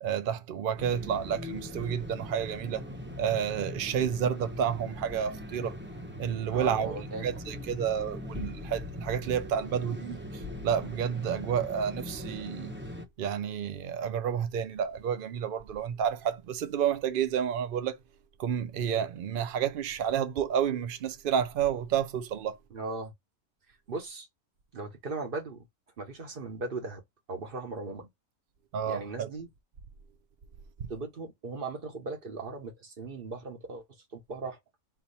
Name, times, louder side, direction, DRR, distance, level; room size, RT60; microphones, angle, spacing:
voice 1, 0.0-2.8 3.2-5.8 6.2-12.7 13.2-18.0 18.4-22.6 28.7-29.3, right 8 dB, 85° right, 0.4 m, -30 dB
sound 1, 0.8-13.0, left 1 dB, 15° right, 0.4 m, -40 dB
voice 2, 6.5-7.3 22.7-23.1 23.9-24.3 24.7-25.7 26.0-27.0 27.3-28.1 28.8-29.5 30.9-34.6, right 3 dB, 40° right, 1.3 m, -38 dB
4.1 x 2.9 x 4.1 m
omnidirectional pair, 1.6 m